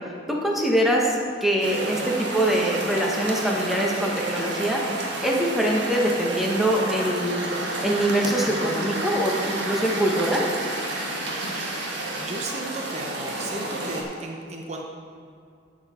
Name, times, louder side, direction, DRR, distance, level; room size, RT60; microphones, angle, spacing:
voice 1, 0.3-7.5 7.8-10.5, right 1 dB, ahead, -2 dB, 1.4 m, -24 dB
sound 1, 1.6-14.0, right 1 dB, 65° right, 1.6 m, -30 dB
voice 2, 12.2-14.9, right 2 dB, 35° right, 1 dB, 0.9 m, -35 dB
12.0 x 7.5 x 4.4 m, 2.4 s
head